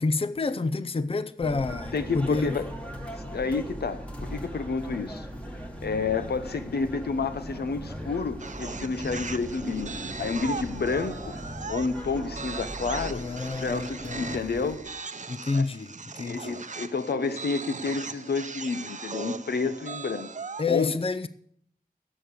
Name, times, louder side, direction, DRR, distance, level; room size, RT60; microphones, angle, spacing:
voice 1, 0.0-2.6 13.1-14.4 15.3-16.6 20.6-21.3, left 3 dB, 35° left, 0.5 m, -29 dB
sound 1, 1.4-14.8, equal, 10° left, 1.6 m, -39 dB
voice 2, 1.9-2.7 3.3-5.3 5.8-11.3 11.7-13.2 13.5-14.8 15.5-15.6 16.3-20.3 20.7-20.9, left 4 dB, 90° left, 0.8 m, -30 dB
sound 2, 8.4-20.7, right 4 dB, 50° right, 0.7 m, -38 dB
11.5 x 7.8 x 6.9 m
wide cardioid pair, 90°, 16 cm